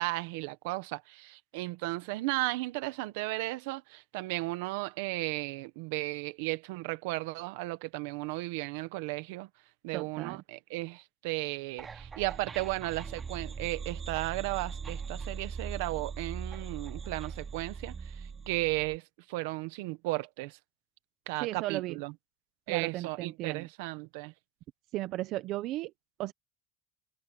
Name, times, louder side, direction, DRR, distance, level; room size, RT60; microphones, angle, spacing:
voice 1, 0.0-9.5 9.8-19.0 19.3-20.6 21.3-22.1 22.7-24.3, right 21 dB, 85° right, 1.4 m, -35 dB
voice 2, 9.9-10.4 21.4-22.0 22.7-23.7 24.9-25.9 26.2-26.3, right 16 dB, 60° right, 1.0 m, -35 dB
sound 1, 11.8-19.0, right 5 dB, 25° right, 3.7 m, -40 dB
supercardioid pair, 120°, 0 cm